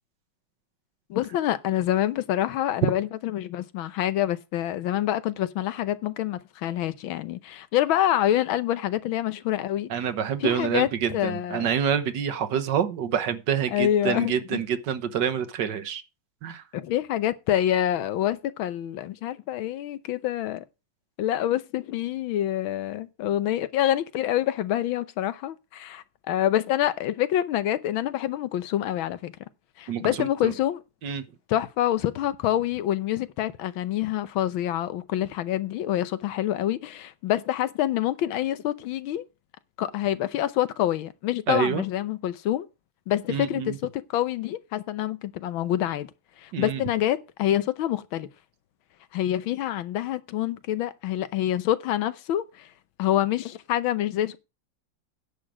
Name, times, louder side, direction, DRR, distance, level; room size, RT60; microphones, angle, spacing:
voice 1, 1.1-9.9 10.4-11.7 13.7-14.6 16.7-20.6 21.2-29.3 29.8-30.8 31.5-39.2 39.8-42.7 43.1-46.1 46.4-48.3 49.1-52.7 53.0-54.4, left 12 dB, 90° left, 1.6 m, -26 dB
voice 2, 9.9-16.0 16.4-16.6 29.9-30.5 31.0-31.2 41.5-41.8 43.3-43.8 46.5-46.8, right 8 dB, 65° right, 1.6 m, -27 dB
10.0 x 6.6 x 6.1 m
omnidirectional pair, 2.1 m